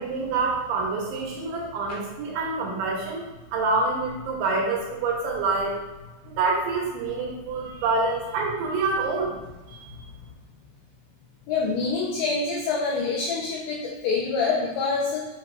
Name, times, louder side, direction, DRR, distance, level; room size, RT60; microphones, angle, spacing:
voice 1, 0.0-5.7 6.2-9.4 9.7-9.8, right 3 dB, 75° right, -3 dB, 3.0 m, -27 dB
voice 2, 11.5-15.3, left 4 dB, 85° left, -2 dB, 2.6 m, -26 dB
7.5 x 5.6 x 2.3 m, 1.1 s
omnidirectional pair, 6.0 m